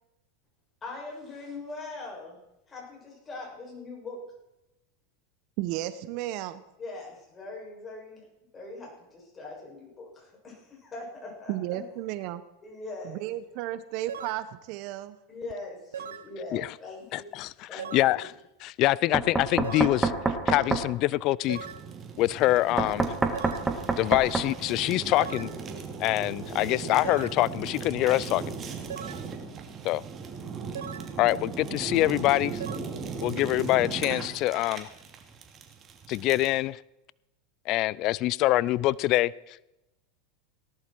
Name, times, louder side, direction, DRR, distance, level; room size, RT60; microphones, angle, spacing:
voice 1, 0.8-2.4 2.7-4.3 6.8-8.2 8.5-11.8 12.6-13.2 15.3-17.2 17.7-18.2, left 3 dB, 25° left, -2 dB, 7.2 m, -41 dB
voice 2, 5.6-6.6 11.5-12.4 13.0-15.2, right 14 dB, 60° right, 14 dB, 0.9 m, -33 dB
sound 1, 14.1-14.5 15.9-16.3 17.8-18.2 19.6-20.0 21.5-21.9 23.3-23.7 25.2-25.6 27.0-27.4 28.9-29.3 30.7-31.1 32.6-32.8, right 7 dB, 90° right, 0.8 m, -38 dB
voice 3, 17.1-18.3 18.6-21.7 22.2-23.1 24.0-25.5 26.0-28.5 29.8-30.0 31.2-32.6 33.2-34.9 36.1-36.8 37.7-39.6, left 17 dB, 50° left, 22 dB, 0.4 m, -25 dB
Knock, 19.1-20.9 22.8-24.5, right 3 dB, 15° right, 2.0 m, -27 dB
Fire, 21.4-36.6, right 5 dB, 35° right, 2.8 m, -38 dB
18.5 x 11.5 x 4.6 m, 0.93 s
hypercardioid pair, 100°, 0 cm